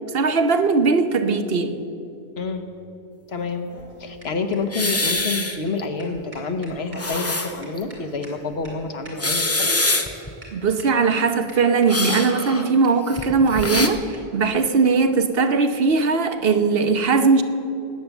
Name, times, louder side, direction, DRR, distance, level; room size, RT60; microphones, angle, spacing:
voice 1, 0.1-1.8 10.5-17.4, right 4 dB, 70° right, 1.1 m, -19 dB
voice 2, 2.4-2.7 3.3-3.7 4.0-9.8, left 4 dB, 80° left, 1.3 m, -28 dB
sound 1, 3.4-10.1 10.4-10.5 10.8-11.2 11.5-12.2 12.5-12.6 12.8-12.9 13.1-13.2 13.5-13.6 13.8-13.9 14.1-14.2 14.5-14.6 14.8-14.9 15.8-15.9, right 1 dB, 45° right, 3.5 m, -44 dB
sound 2, 4.7-5.8 6.2-6.3 6.8-7.8 8.2-8.3 9.1-10.3 11.9-13.9, left 2 dB, 15° left, 0.7 m, -24 dB
18.5 x 9.2 x 7.1 m
omnidirectional pair, 1.1 m